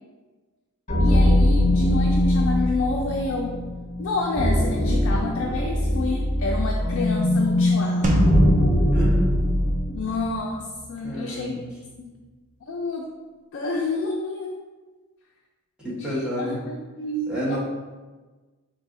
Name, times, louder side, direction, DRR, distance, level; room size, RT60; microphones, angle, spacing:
sound 1, 0.9-10.1, left 1 dB, 35° left, 0.8 m, -22 dB
voice 1, 1.0-3.5 4.0-8.2 9.9-11.6 12.0-12.1 12.6-13.1 13.5-14.6 15.9-17.6, left 3 dB, 60° left, 0 dB, 0.4 m, -29 dB
sound 2, 8.0-10.6, right 1 dB, 35° right, 0.5 m, -22 dB
voice 2, 8.9-9.3 11.0-11.6 15.8-16.6 17.3-17.6, equal, 5° right, -8 dB, 1.0 m, -29 dB
4.0 x 2.7 x 3.6 m, 1.3 s
head